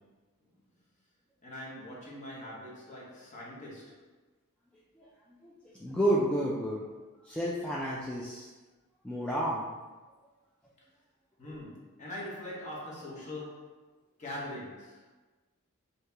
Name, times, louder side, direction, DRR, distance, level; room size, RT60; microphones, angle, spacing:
voice 1, 1.4-4.1 11.4-13.8 14.2-15.1, left 1 dB, 35° left, -5 dB, 0.9 m, -42 dB
voice 2, 5.4-6.8 7.2-8.4 9.0-9.7, right 1 dB, 5° left, -6 dB, 0.3 m, -30 dB
3.1 x 2.8 x 3.3 m, 1.2 s
head